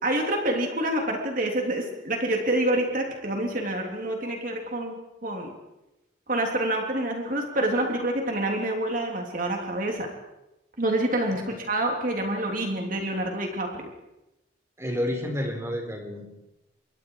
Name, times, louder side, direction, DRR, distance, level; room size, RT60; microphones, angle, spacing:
voice 1, 0.0-5.5 6.3-10.1 10.8-13.9, right 1 dB, 45° right, 2 dB, 3.3 m, -27 dB
voice 2, 14.8-16.3, left 1 dB, 15° right, 2 dB, 4.4 m, -30 dB
27.0 x 23.5 x 4.8 m, 0.95 s
head